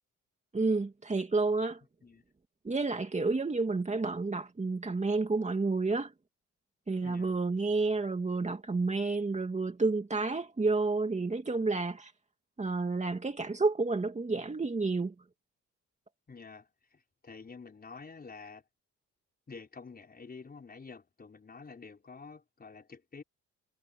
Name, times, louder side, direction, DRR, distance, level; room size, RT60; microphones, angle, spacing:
voice 1, 0.5-1.8 2.6-6.1 6.9-12.1 12.6-15.1, right 3 dB, 25° right, 2.4 m, -30 dB
voice 2, 7.0-7.4 16.3-18.6 19.5-23.2, left 4 dB, 30° left, 4.7 m, -49 dB
cardioid pair, 90°, 30 cm